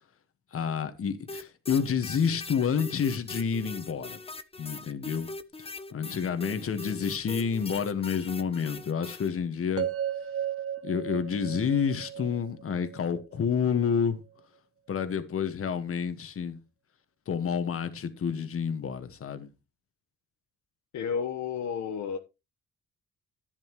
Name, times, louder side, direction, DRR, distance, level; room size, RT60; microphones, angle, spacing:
voice 1, 0.5-4.2 4.6-5.3 5.9-9.9 10.8-14.2 14.9-16.6 17.3-19.5, left 6 dB, 45° left, 1.6 m, -29 dB
sound 1, 1.3-9.3, left 3 dB, 20° left, 0.8 m, -41 dB
sound 2, 9.8-13.9, right 9 dB, 50° right, 1.0 m, -35 dB
voice 2, 20.9-22.2, left 7 dB, 70° left, 1.2 m, -31 dB
11.0 x 9.8 x 3.1 m
cardioid pair, 90°, 30 cm